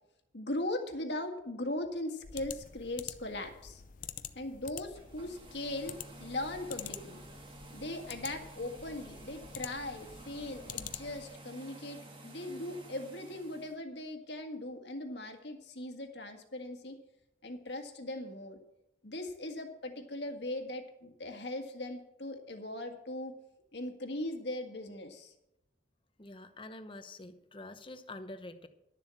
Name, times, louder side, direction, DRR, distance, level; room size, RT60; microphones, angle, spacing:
voice 1, 0.3-3.8 4.4-7.2 7.7-17.0 17.4-18.6 19.0-23.3 23.7-25.3, left 1 dB, 70° left, 4 dB, 1.8 m, -39 dB
sound 1, 2.2-11.4, left 9 dB, 45° left, 0.5 m, -47 dB
sound 2, 4.9-13.8, right 2 dB, 25° right, 1.6 m, -52 dB
voice 2, 26.2-28.7, left 2 dB, 25° left, 9 dB, 0.9 m, -46 dB
12.0 x 7.2 x 7.7 m, 0.86 s
head